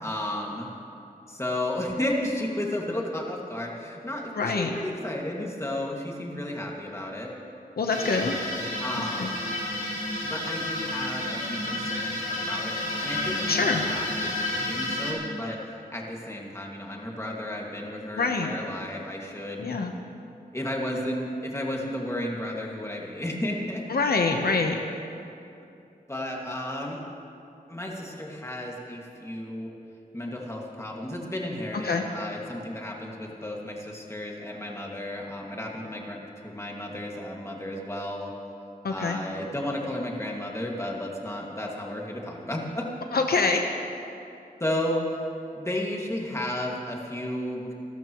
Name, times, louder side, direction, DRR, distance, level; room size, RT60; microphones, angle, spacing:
voice 1, 0.0-0.7 1.3-7.3 8.8-9.4 10.3-12.7 13.0-15.6 15.9-19.8 20.5-23.8 26.1-27.0 27.7-29.7 30.1-38.3 38.9-42.9 44.6-45.2 45.5-47.7, left 1 dB, 15° left, -2 dB, 2.1 m, -33 dB
voice 2, 4.4-4.7 7.8-8.4 9.2-9.3 13.5-13.8 18.2-18.5 19.6-19.9 23.9-24.8 31.8-32.0 38.8-39.2 43.1-43.7, left 4 dB, 80° left, 4 dB, 1.0 m, -25 dB
sound 1, 7.9-15.1, left 1 dB, 60° left, 4.0 m, -31 dB
29.0 x 13.0 x 3.1 m, 2.7 s
wide cardioid pair, 115°, 16 cm